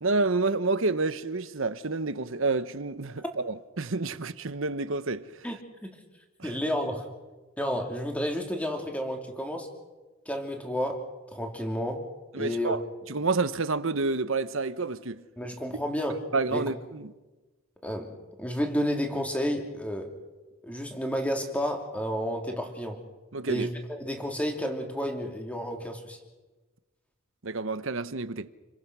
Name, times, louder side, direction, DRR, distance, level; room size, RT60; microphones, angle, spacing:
voice 1, 0.0-5.3 6.4-6.5 12.3-12.8 13.1-15.2 16.3-17.1 23.3-23.7 27.4-28.5, right 3 dB, 60° right, 1.1 m, -29 dB
voice 2, 5.4-5.9 6.4-7.1 7.6-9.7 10.3-11.1 11.3-12.1 12.4-12.8 15.4-16.2 16.5-16.7 17.8-20.1 20.6-23.0 23.4-26.2, equal, 5° left, 3.0 m, -31 dB
30.0 x 23.5 x 6.2 m
head